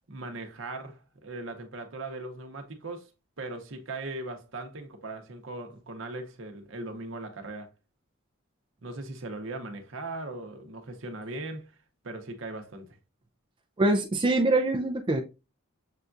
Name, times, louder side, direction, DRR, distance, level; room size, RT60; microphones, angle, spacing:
voice 1, 0.1-3.1 3.4-7.7 8.8-11.7 12.0-13.0, right 2 dB, 65° right, 0.8 m, -39 dB
voice 2, 13.8-15.2, right 2 dB, 25° right, 0.3 m, -24 dB
6.6 x 2.3 x 2.5 m
head